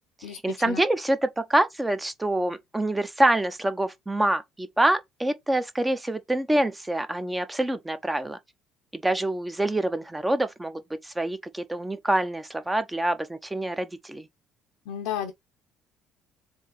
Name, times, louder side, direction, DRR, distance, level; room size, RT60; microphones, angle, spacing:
voice 1, 0.4-8.4 8.9-14.3, right 1 dB, 15° right, 0.8 m, -26 dB
voice 2, 14.9-15.3, left 9 dB, 75° left, 0.6 m, -32 dB
3.6 x 2.8 x 4.6 m
hypercardioid pair, 65°, 0 cm